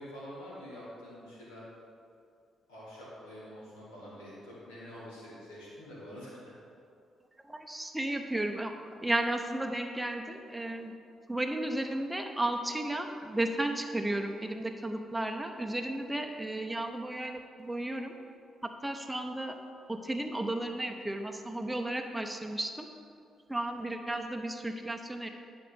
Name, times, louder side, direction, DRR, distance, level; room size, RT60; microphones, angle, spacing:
voice 1, 0.0-1.7 2.7-6.6, equal, 80° left, -7 dB, 2.4 m, -46 dB
voice 2, 7.4-10.9 11.3-18.1 18.6-19.6 19.9-22.9 23.5-25.3, right 1 dB, 10° right, 3 dB, 0.7 m, -34 dB
10.0 x 5.3 x 5.3 m, 2.5 s
figure-of-eight pair, 40°, 0 cm